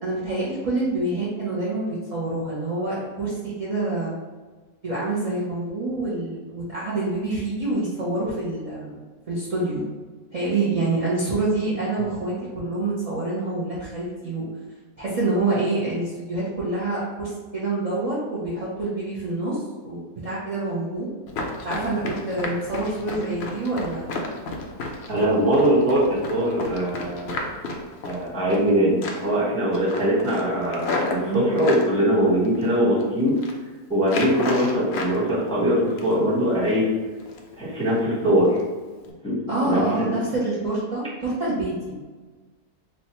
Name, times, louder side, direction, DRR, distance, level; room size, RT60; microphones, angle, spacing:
voice 1, 0.0-4.2 4.8-9.0 9.3-9.8 10.3-14.5 15.0-21.1 21.6-24.1 31.1-31.5 39.5-41.9, right 2 dB, 45° right, -9 dB, 0.4 m, -27 dB
Run, 21.3-28.7 29.0-29.4 29.7-31.9 32.4-33.0 33.3-33.6 34.0-35.2 35.5-36.3 36.6-36.8 37.2-37.5 37.9-38.0 38.5-38.6 39.0-39.1, left 3 dB, 70° left, 0.6 m, -32 dB
voice 2, 25.1-27.4 28.0-33.3 33.9-36.9 37.6-38.6 39.2-39.3 39.6-40.1, equal, 5° left, -8 dB, 0.8 m, -21 dB
2.9 x 2.2 x 4.2 m, 1.3 s
omnidirectional pair, 1.6 m